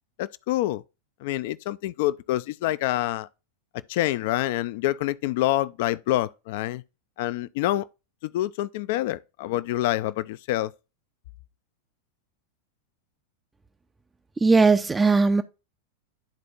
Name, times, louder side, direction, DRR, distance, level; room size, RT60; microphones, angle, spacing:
voice 1, 0.2-0.8 1.2-3.3 3.9-6.8 7.2-7.9 8.2-10.7, left 15 dB, 50° left, 0.4 m, -26 dB
voice 2, 14.4-15.4, right 4 dB, 10° right, 0.5 m, -18 dB
12.0 x 4.2 x 2.4 m
figure-of-eight pair, 90°, 0 cm